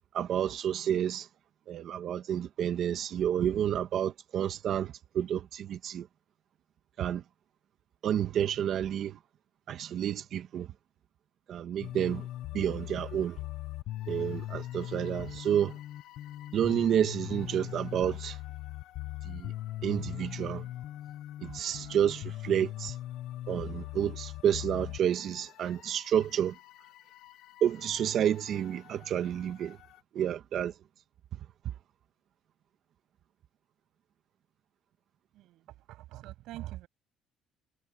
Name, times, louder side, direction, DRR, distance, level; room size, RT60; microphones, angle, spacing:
voice 1, 0.1-1.3 1.7-6.1 7.0-7.2 8.0-9.2 9.7-10.7 11.5-12.3 12.5-13.4 14.1-15.8 16.5-18.4 19.2-19.5 19.8-20.7 21.4-23.0 23.5-26.6 27.6-29.8 30.1-30.7, right 9 dB, 50° right, 1.4 m, -30 dB
sound 1, 11.8-30.0, left 14 dB, 65° left, 0.8 m, -41 dB
voice 2, 35.3-36.9, right 16 dB, 75° right, 7.8 m, -44 dB
cardioid pair, 155°, 0 cm